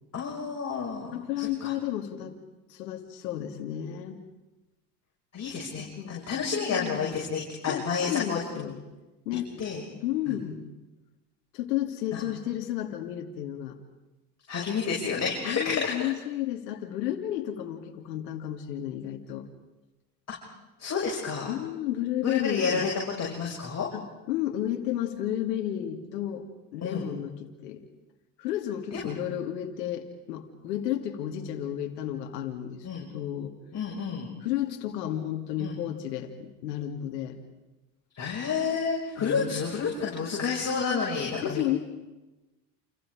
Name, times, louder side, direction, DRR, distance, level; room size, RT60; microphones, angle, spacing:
voice 1, 0.1-1.7 5.3-8.4 9.6-9.8 10.3-10.4 12.1-12.2 14.5-16.1 20.8-21.5 22.2-22.9 23.2-23.9 26.8-27.1 28.9-29.0 32.8-33.1 33.7-34.3 35.6-35.8 38.2-41.6, left 5 dB, 30° left, -4 dB, 6.8 m, -30 dB
voice 2, 1.1-2.4 2.7-4.2 5.8-6.2 6.7-7.1 7.7-8.8 9.3-9.5 10.0-10.6 11.5-13.8 15.4-19.5 21.5-22.9 23.9-26.5 26.7-27.8 28.4-33.5 34.4-37.4 39.2-39.6 41.4-41.8, left 11 dB, 75° left, 3 dB, 2.6 m, -32 dB
29.0 x 28.5 x 5.0 m, 1.1 s
hypercardioid pair, 75°, 49 cm